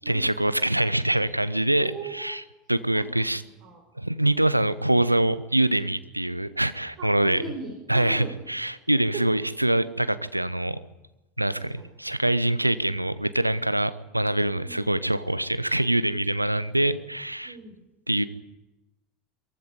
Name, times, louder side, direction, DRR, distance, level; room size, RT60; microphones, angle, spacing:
voice 1, 0.1-2.4 2.7-3.4 4.0-7.4 7.9-10.8 11.4-17.6 18.1-18.2, right 1 dB, 90° right, 15 dB, 0.9 m, -24 dB
voice 2, 1.8-2.4 2.9-3.8 7.0-8.3 9.1-9.2 11.8-11.9 14.5-14.9 17.4-17.8, right 4 dB, 45° right, 2 dB, 5.1 m, -39 dB
23.5 x 15.5 x 9.8 m, 0.99 s
figure-of-eight pair, 75°, 0 cm